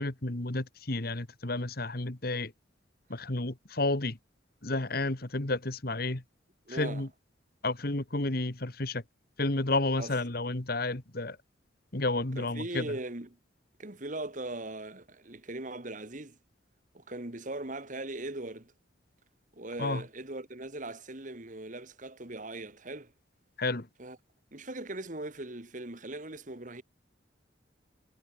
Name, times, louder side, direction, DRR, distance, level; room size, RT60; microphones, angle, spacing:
voice 1, 0.0-2.5 3.1-4.2 4.6-6.2 6.7-7.1 7.6-9.0 9.4-11.4 11.9-12.9 19.8-20.0 23.6-23.9, left 2 dB, 50° left, 1.7 m, -31 dB
voice 2, 6.7-7.1 10.0-10.1 12.4-13.4 13.8-16.4 16.9-18.7 19.6-23.1 24.0-24.2 24.5-26.8, right 2 dB, 40° right, 1.9 m, -39 dB
head